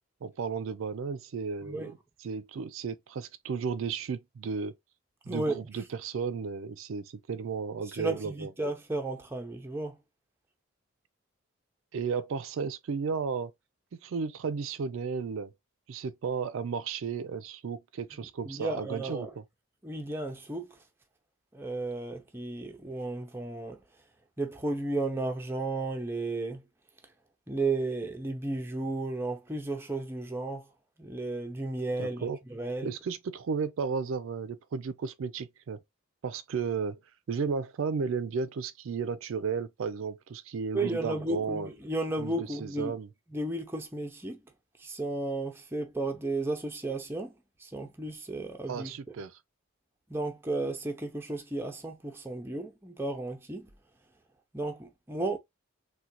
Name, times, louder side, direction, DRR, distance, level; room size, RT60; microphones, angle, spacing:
voice 1, 0.2-1.8 2.2-4.8 5.3-8.5 11.9-13.5 13.9-15.5 15.9-19.3 32.0-32.4 32.8-35.8 36.2-37.0 37.3-41.7 42.2-42.3 42.6-43.1 48.7-49.4, right 5 dB, 70° right, 0.4 m, -34 dB
voice 2, 1.6-1.9 5.3-5.6 7.8-10.0 18.4-19.3 19.8-20.8 21.5-23.8 24.4-26.6 27.5-30.7 31.0-33.0 40.7-43.0 43.3-44.4 44.8-48.9 50.1-53.7 54.5-55.4, right 2 dB, 10° right, 0.5 m, -34 dB
3.7 x 2.2 x 2.8 m
head